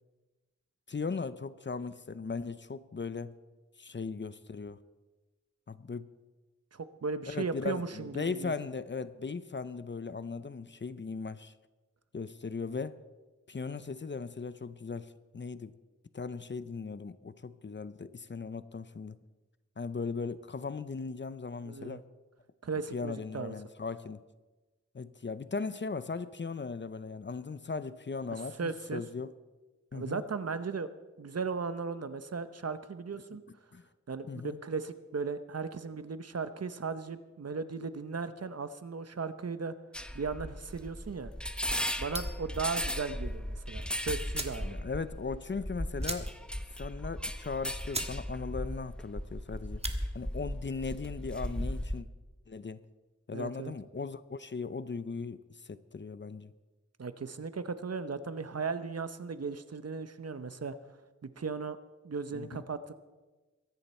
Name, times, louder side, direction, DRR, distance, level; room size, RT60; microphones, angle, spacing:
voice 1, 0.9-3.3 3.8-4.8 5.7-6.1 7.3-11.5 12.1-13.0 13.5-15.7 16.1-19.2 19.8-22.0 22.9-24.2 24.9-29.3 29.9-30.2 33.3-33.4 33.7-33.8 34.3-34.6 44.6-46.3 46.7-49.8 50.1-52.1 52.5-52.8 53.3-56.5 62.3-62.6, left 4 dB, 40° left, 0.6 m, -38 dB
voice 2, 6.7-8.5 21.6-22.0 22.6-23.5 28.6-29.0 29.9-30.9 31.2-33.4 34.1-39.7 40.1-41.3 42.0-44.7 53.3-53.7 57.0-60.8 61.2-61.8 62.0-62.9, right 5 dB, 60° right, 0.9 m, -36 dB
sound 1, 39.9-52.0, equal, 5° left, 0.8 m, -37 dB
sound 2, 42.1-42.5 43.8-43.9 44.3-44.7 45.0-45.1 45.3-45.5 46.0-46.6 46.9-47.0 47.5-47.6 47.9-48.2 48.5-48.9 49.6-50.0, right 2 dB, 20° right, 1.4 m, -39 dB
23.0 x 10.0 x 4.3 m
wide cardioid pair, 70°, 29 cm